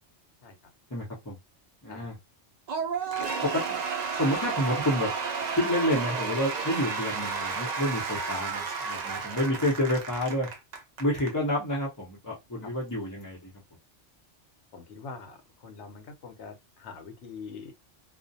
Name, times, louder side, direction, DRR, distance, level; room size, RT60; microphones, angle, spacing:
voice 1, 0.9-1.3 1.8-2.1 3.4-3.8 4.2-5.1 5.5-10.5 11.0-13.5, equal, 20° left, 0.7 m, -29 dB
Cheering / Applause / Crowd, 2.7-11.3, right 5 dB, 65° right, 0.4 m, -32 dB
voice 2, 14.7-17.7, left 5 dB, 70° left, 0.9 m, -44 dB
2.4 x 2.1 x 2.6 m
omnidirectional pair, 1.2 m